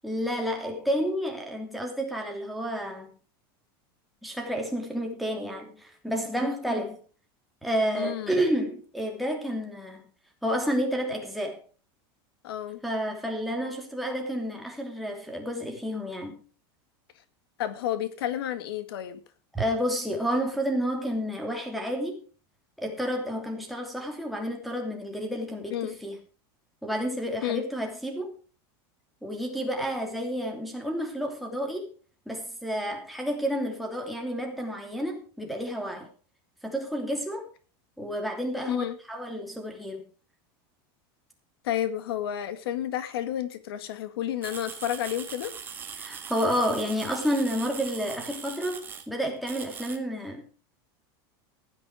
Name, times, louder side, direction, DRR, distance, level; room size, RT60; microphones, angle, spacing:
voice 1, 0.0-3.1 4.2-7.0 7.6-10.0 10.4-11.6 12.8-16.4 19.5-22.2 22.8-26.2 26.8-28.3 29.2-31.9 32.3-36.1 36.6-37.5 38.0-40.0 46.0-50.5, equal, ahead, 2.9 m, -30 dB
voice 2, 8.0-8.4 12.4-12.8 17.6-19.2 25.7-26.0 27.4-27.6 38.7-39.0 41.6-45.5, left 11 dB, 90° left, 1.9 m, -31 dB
sound 1, 44.4-49.1 49.4-50.0, right 6 dB, 15° right, 1.9 m, -41 dB
15.0 x 10.0 x 4.9 m
supercardioid pair, 160°, 12 cm